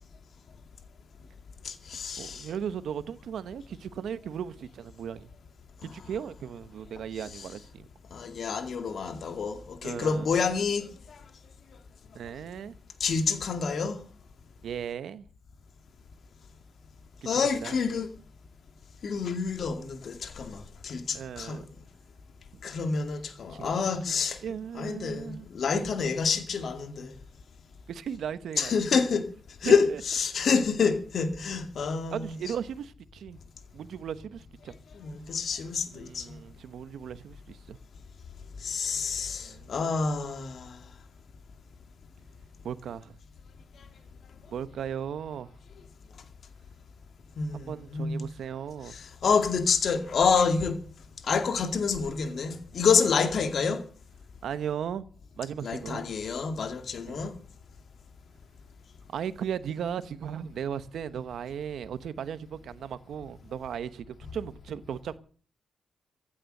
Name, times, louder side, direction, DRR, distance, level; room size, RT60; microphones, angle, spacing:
voice 1, 1.6-2.5 5.8-5.9 8.1-10.9 13.0-14.0 17.2-18.1 19.0-21.6 22.6-24.4 24.7-27.1 28.6-29.3 29.6-32.4 35.0-36.2 38.6-40.8 47.4-48.2 48.9-50.8 51.2-53.8 55.6-57.3, left 5 dB, 65° left, 2.2 m, -28 dB
voice 2, 2.2-5.3 5.8-7.8 9.8-10.3 12.1-12.7 14.6-15.3 17.2-17.3 17.6-17.8 21.1-21.7 23.5-23.7 24.0-24.2 24.4-25.5 25.7-25.9 27.9-28.8 29.6-30.0 32.1-33.4 33.7-34.7 35.9-37.8 39.4-39.8 42.6-43.1 44.5-45.5 47.5-49.0 54.4-55.0 55.3-56.1 57.1-57.3 59.1-65.2, right 8 dB, 80° right, 1.0 m, -36 dB
15.5 x 10.0 x 6.7 m
cardioid pair, 75°, 0 cm